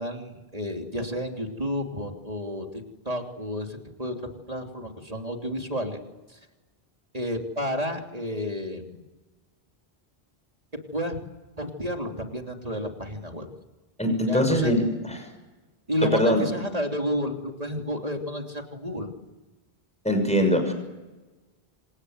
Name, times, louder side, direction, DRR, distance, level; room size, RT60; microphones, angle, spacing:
voice 1, 0.0-4.1 4.5-6.0 6.3-6.4 7.1-9.0 10.9-11.1 11.6-13.5 14.3-14.7 15.9-19.1, equal, 35° right, 3 dB, 3.2 m, -31 dB
voice 2, 14.0-15.3 16.1-16.4 20.0-20.7, equal, 5° left, 5 dB, 6.1 m, -22 dB
28.0 x 26.0 x 8.1 m, 1.2 s
omnidirectional pair, 1.1 m